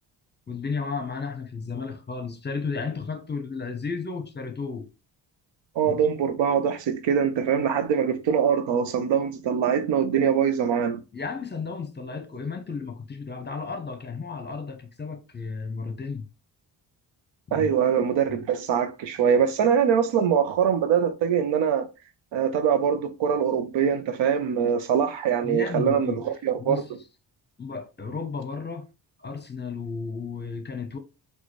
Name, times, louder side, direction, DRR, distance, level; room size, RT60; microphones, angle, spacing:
voice 1, 0.5-4.9 5.8-6.0 11.1-16.3 17.5-17.7 25.4-26.3 26.6-26.9 27.6-28.9 29.2-31.0, left 5 dB, 25° left, 0.7 m, -33 dB
voice 2, 5.8-11.0 17.5-21.9 22.3-26.8, right 7 dB, 80° right, 0.7 m, -23 dB
3.8 x 2.4 x 3.0 m
cardioid pair, 65°, 44 cm